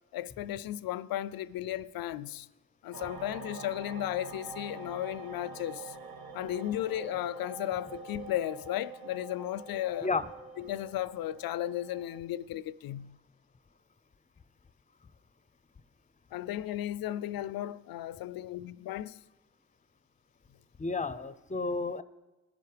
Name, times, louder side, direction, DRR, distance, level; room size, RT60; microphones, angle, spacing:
voice 1, 0.1-2.5 2.8-6.0 6.3-10.1 10.6-13.2 16.3-19.2, left 13 dB, 60° left, 0.5 m, -35 dB
sound 1, 2.9-12.2, right 4 dB, 65° right, 1.2 m, -46 dB
voice 2, 20.8-22.0, left 3 dB, 20° left, 0.6 m, -31 dB
19.5 x 11.0 x 3.4 m
supercardioid pair, 40°, 39 cm